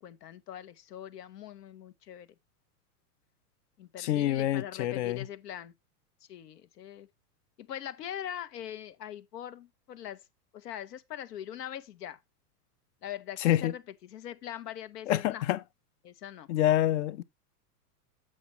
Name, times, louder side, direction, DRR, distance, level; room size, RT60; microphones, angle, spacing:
voice 1, 0.0-2.3 3.8-5.7 6.3-7.1 7.6-10.3 10.5-12.2 13.0-15.4 16.0-16.5, left 10 dB, 80° left, 1.1 m, -42 dB
voice 2, 4.0-5.2 13.4-13.7 15.1-15.6 16.5-17.2, left 13 dB, 45° left, 0.7 m, -27 dB
7.6 x 6.2 x 4.0 m
hypercardioid pair, 140°, 48 cm